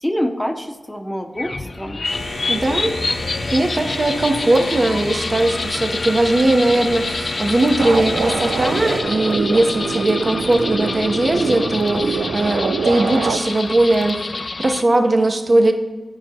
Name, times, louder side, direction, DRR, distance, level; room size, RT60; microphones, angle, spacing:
voice 1, 0.0-2.0, equal, 10° left, 4 dB, 0.7 m, -25 dB
sound 1, 1.4-14.8, left 3 dB, 50° left, 0.3 m, -28 dB
sound 2, 2.0-9.0, left 1 dB, 85° left, 1.5 m, -30 dB
voice 2, 2.5-15.7, right 2 dB, 50° right, 3 dB, 0.8 m, -19 dB
sound 3, 7.8-13.4, right 5 dB, 90° right, 0.3 m, -25 dB
12.0 x 4.6 x 2.8 m, 1.2 s
cardioid pair, 50°, 0 cm